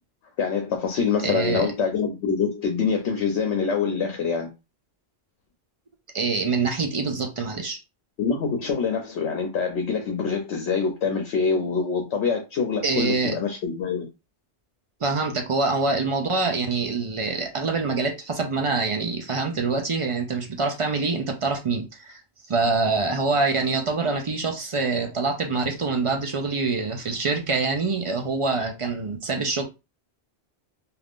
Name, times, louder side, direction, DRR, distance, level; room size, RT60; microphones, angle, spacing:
voice 1, 0.4-4.5 8.2-14.1, left 5 dB, 75° left, 0.9 m, -25 dB
voice 2, 1.2-1.7 6.1-7.8 12.8-13.4 15.0-22.2 22.5-29.6, right 4 dB, 50° right, 0.4 m, -25 dB
2.5 x 2.4 x 3.5 m
omnidirectional pair, 1.2 m